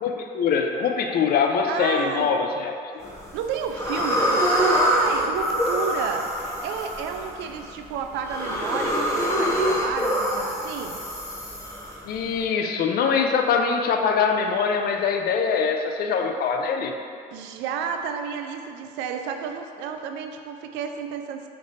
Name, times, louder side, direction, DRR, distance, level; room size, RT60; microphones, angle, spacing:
voice 1, 0.0-2.7 3.0-3.1 12.0-16.9, left 6 dB, 60° left, 4 dB, 0.5 m, -23 dB
voice 2, 1.7-2.3 3.3-11.0 17.3-21.5, right 6 dB, 80° right, 5 dB, 0.4 m, -31 dB
sound 1, 3.0-3.4 3.8-12.4, equal, 15° left, 1.2 m, -25 dB
5.7 x 3.3 x 2.6 m, 2.3 s
supercardioid pair, 75°, 18 cm